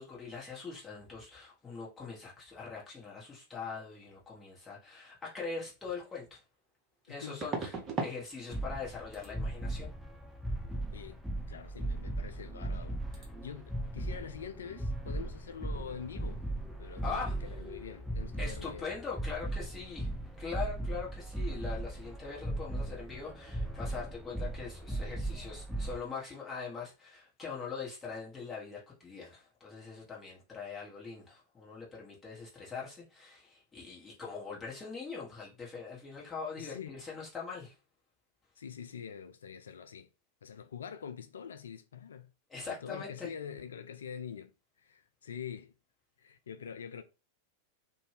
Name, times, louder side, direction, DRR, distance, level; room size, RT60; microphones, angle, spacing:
voice 1, 0.0-6.4 7.1-7.7 8.0-9.9 17.0-17.4 18.4-20.1 20.4-37.7 42.5-43.3, left 5 dB, 15° left, 1.4 m, -42 dB
sound 1, 5.9-6.0 7.4-8.2 8.5-8.9 9.1-9.3 12.2-12.4 12.6-12.9 13.1-13.3, right 4 dB, 25° right, 0.9 m, -38 dB
voice 2, 7.1-7.4 10.9-11.2 11.5-16.4 16.8-18.9 36.6-36.9 38.6-40.1 40.4-42.3 42.6-44.5 44.8-45.7 46.2-47.0, left 7 dB, 65° left, 0.3 m, -45 dB
sound 2, 8.5-26.0, right 1 dB, ahead, 0.5 m, -38 dB
2.6 x 2.6 x 3.3 m
figure-of-eight pair, 90°, 0 cm